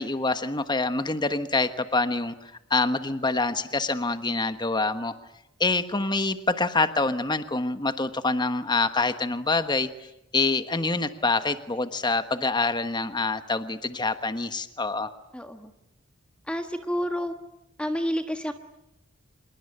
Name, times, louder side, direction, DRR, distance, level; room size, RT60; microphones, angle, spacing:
voice 1, 0.0-2.3 2.7-5.1 5.6-9.9 10.3-15.1, left 3 dB, 20° left, 9 dB, 1.3 m, -26 dB
voice 2, 15.3-15.7 16.5-17.3 17.8-18.5, equal, 5° left, 6 dB, 1.4 m, -29 dB
26.5 x 22.0 x 10.0 m, 0.87 s
head